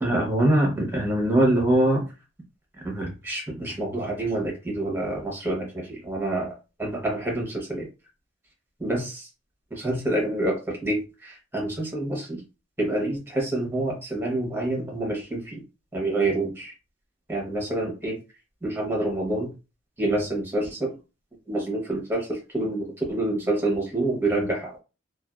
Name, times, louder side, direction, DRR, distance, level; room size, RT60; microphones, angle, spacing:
voice 1, 0.0-2.0 2.8-6.5 6.8-7.9 8.8-9.1 9.8-12.4 12.8-15.6 15.9-16.7 17.3-18.2 18.6-19.5 20.0-20.9 21.5-24.8, right 1 dB, 10° right, -1 dB, 0.9 m, -26 dB
2.5 x 2.3 x 2.2 m, 0.30 s
head